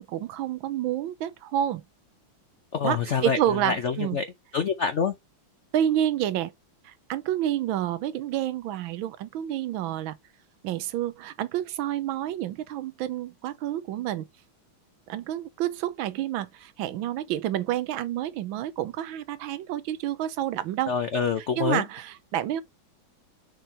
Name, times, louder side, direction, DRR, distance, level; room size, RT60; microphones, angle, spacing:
voice 1, 0.0-1.8 2.8-4.2 5.7-6.5 6.8-10.2 10.6-14.3 15.1-20.9 21.6-22.6, right 11 dB, 80° right, 1.4 m, -29 dB
voice 2, 2.7-4.2 4.5-5.1 20.9-21.8, left 6 dB, 70° left, 0.6 m, -26 dB
6.4 x 4.4 x 4.6 m
omnidirectional pair, 2.2 m